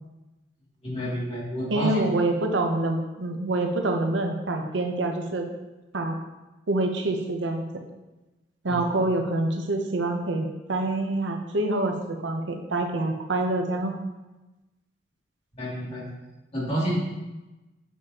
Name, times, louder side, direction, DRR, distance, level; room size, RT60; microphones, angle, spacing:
voice 1, 0.8-1.9 8.7-8.9 15.5-16.0 16.5-17.0, equal, 35° left, -7 dB, 2.4 m, -29 dB
voice 2, 1.7-5.5 5.9-6.2 6.7-7.6 8.6-13.9, right 2 dB, 80° right, 4 dB, 0.7 m, -26 dB
7.0 x 6.4 x 2.8 m, 1.1 s
head